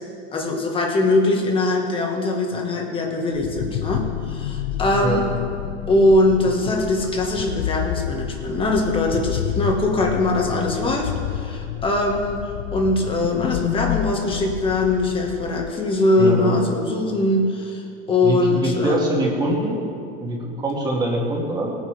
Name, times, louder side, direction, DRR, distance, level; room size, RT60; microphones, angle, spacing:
voice 1, 0.3-5.3 5.9-12.4 12.7-19.1, left 2 dB, 15° left, 1 dB, 1.6 m, -21 dB
sound 1, 3.3-15.7, left 12 dB, 65° left, 0.5 m, -29 dB
voice 2, 16.2-16.6 18.2-19.8 20.2-21.7, right 1 dB, 15° right, -2 dB, 2.1 m, -23 dB
19.5 x 9.4 x 3.4 m, 2.5 s
supercardioid pair, 155°, 32 cm